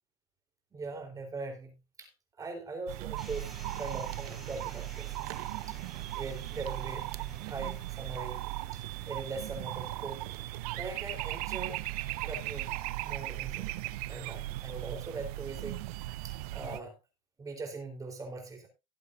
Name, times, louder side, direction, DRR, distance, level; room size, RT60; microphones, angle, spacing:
voice 1, 0.7-2.1 2.4-5.2 5.7-5.8 6.2-10.3 10.8-11.8 12.2-12.7 13.0-13.7 14.1-15.8 16.2-16.9 17.4-18.7, right 3 dB, 15° right, 3 dB, 3.9 m, -41 dB
sound 1, 2.9-16.8, right 17 dB, 90° right, 0.7 m, -37 dB
sound 2, 3.2-15.3, right 1 dB, ahead, 4.1 m, -55 dB
17.5 x 8.3 x 2.6 m, 0.24 s
cardioid pair, 155°, 19 cm